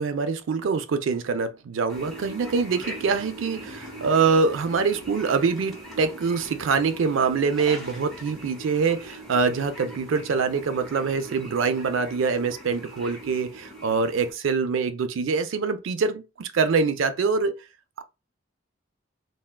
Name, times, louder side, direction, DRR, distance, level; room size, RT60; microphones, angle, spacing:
voice 1, 0.0-17.5, right 5 dB, 85° right, 0.4 m, -24 dB
sound 1, 1.9-14.3, right 1 dB, ahead, 1.2 m, -41 dB
3.4 x 2.2 x 2.2 m
head